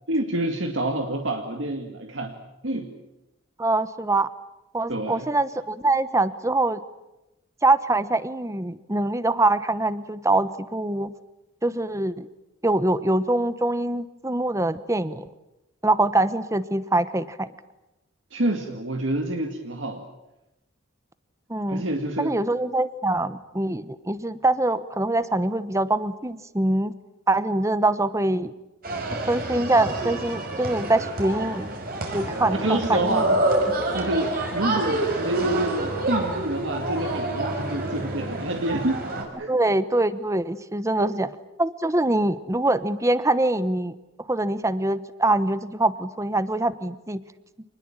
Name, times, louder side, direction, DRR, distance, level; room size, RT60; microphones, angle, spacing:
voice 1, 0.1-2.4 2.6-2.9 4.9-5.3 18.3-20.0 21.7-22.4 32.5-33.3 33.9-39.1 39.4-39.5 41.0-41.2, right 1 dB, 65° right, 4 dB, 2.1 m, -27 dB
voice 2, 3.6-4.3 4.7-6.8 7.6-11.1 11.6-12.3 12.6-15.3 15.8-17.5 21.5-21.8 22.2-26.9 27.3-28.5 29.3-31.7 32.1-33.2 39.5-41.3 41.6-43.9 44.3-47.2, right 2 dB, 15° right, 14 dB, 1.0 m, -24 dB
sound 1, 28.8-39.2, right 2 dB, 45° right, 5.7 m, -28 dB
26.5 x 20.5 x 8.9 m, 0.95 s
head